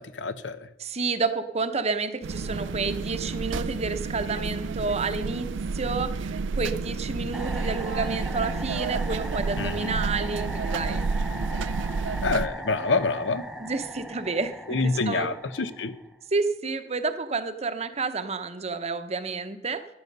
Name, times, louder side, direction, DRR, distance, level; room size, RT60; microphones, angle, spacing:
voice 1, 0.0-0.7 9.6-10.0 12.2-13.4 14.7-16.0, left 3 dB, 75° left, 13 dB, 0.8 m, -27 dB
voice 2, 0.8-11.1 13.6-15.3 16.3-19.9, right 4 dB, 35° right, 10 dB, 0.8 m, -30 dB
sound 1, 2.2-12.5, right 4 dB, 85° right, 0.4 m, -30 dB
sound 2, 7.3-16.2, equal, 5° right, 0.7 m, -38 dB
13.5 x 11.0 x 5.4 m, 0.92 s
head